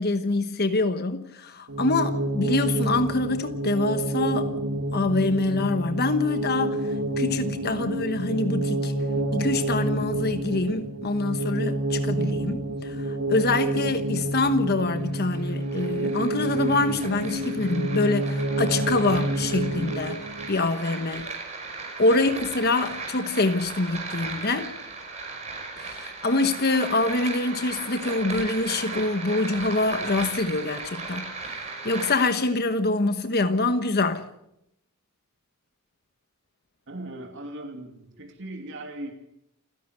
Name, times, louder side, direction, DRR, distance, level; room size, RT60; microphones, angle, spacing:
voice 1, 0.0-4.5 4.9-8.9 9.3-20.2 20.5-21.3 22.0-24.7 25.8-34.3, left 2 dB, 50° left, 1.2 m, -25 dB
sound 1, 1.7-20.5, right 2 dB, 80° right, 2.3 m, -28 dB
sound 2, 15.0-32.3, right 3 dB, 35° right, 5.7 m, -37 dB
voice 2, 36.9-39.1, right 1 dB, 60° right, 2.8 m, -39 dB
29.0 x 11.0 x 8.2 m
head